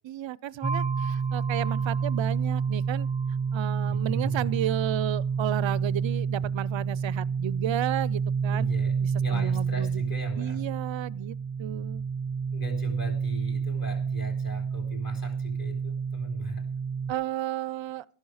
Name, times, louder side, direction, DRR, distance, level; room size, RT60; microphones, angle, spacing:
voice 1, 0.1-3.1 3.5-8.7 9.3-9.9 10.4-12.0 17.1-18.0, right 12 dB, 65° right, 0.5 m, -32 dB
sound 1, 0.6-17.1, right 6 dB, 15° right, 0.5 m, -29 dB
voice 2, 3.9-4.6 8.5-10.7 12.5-16.7, right 1 dB, 45° left, 3.4 m, -38 dB
13.0 x 11.0 x 4.8 m
wide cardioid pair, 120°, 49 cm